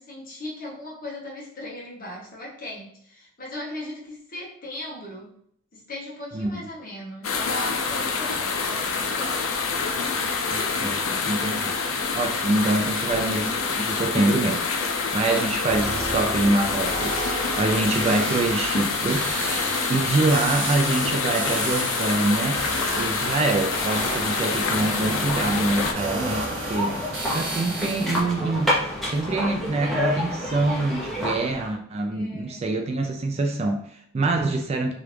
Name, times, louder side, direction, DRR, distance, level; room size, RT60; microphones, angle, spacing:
voice 1, 0.0-5.4 5.7-10.1 26.5-26.6 32.1-32.6, left 1 dB, 45° left, -3 dB, 0.9 m, -38 dB
sound 1, 7.2-25.9, left 4 dB, 80° left, 0.5 m, -27 dB
voice 2, 10.5-11.8 12.1-14.6 15.1-19.3 19.9-22.6 22.9-27.0 27.3-34.9, right 2 dB, 30° right, 3 dB, 0.3 m, -25 dB
sound 2, 15.7-28.2, right 2 dB, 65° right, 1.4 m, -33 dB
sound 3, 24.6-31.7, left 1 dB, ahead, 0.8 m, -29 dB
3.1 x 2.4 x 3.2 m, 0.67 s
head